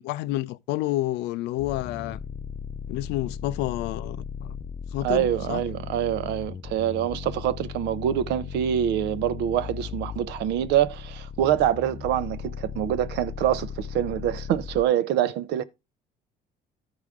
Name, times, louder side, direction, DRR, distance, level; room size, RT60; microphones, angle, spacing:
voice 1, 0.0-2.2 2.9-4.6 4.9-5.6, left 16 dB, 90° left, 0.4 m, -29 dB
sound 1, 1.6-14.8, left 7 dB, 25° left, 0.5 m, -37 dB
voice 2, 5.0-15.6, right 11 dB, 85° right, 0.7 m, -25 dB
12.5 x 4.9 x 3.6 m
cardioid pair, 110°, 17 cm